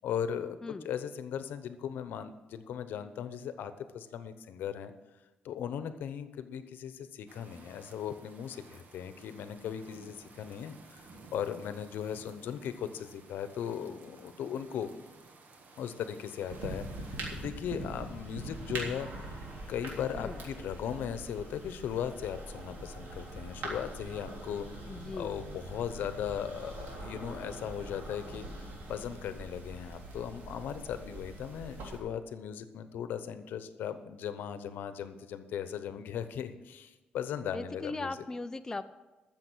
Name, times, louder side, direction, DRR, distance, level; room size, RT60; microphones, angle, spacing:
voice 1, 0.0-4.9 5.4-14.9 15.8-19.4 19.7-28.5 28.9-38.1, left 8 dB, 85° left, 11 dB, 0.9 m, -38 dB
sound 1, 7.3-17.5, right 3 dB, 60° right, 1.6 m, -55 dB
sound 2, 16.5-32.0, right 2 dB, 80° right, 3.5 m, -43 dB
voice 2, 24.8-25.4 37.5-38.8, left 3 dB, 20° left, 9 dB, 0.5 m, -39 dB
13.5 x 7.0 x 6.2 m, 1.1 s
cardioid pair, 130°, 3 cm